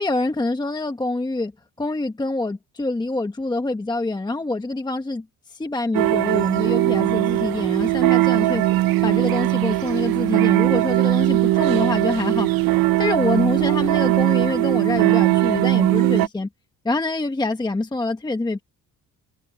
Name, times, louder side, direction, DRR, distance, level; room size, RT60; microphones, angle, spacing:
voice 1, 0.0-1.5 1.8-16.5 16.8-18.6, left 2 dB, 10° left, 1.1 m, -26 dB
sound 1, 5.9-16.3, right 16 dB, 70° right, 0.7 m, -19 dB
cardioid pair, 130°, 37 cm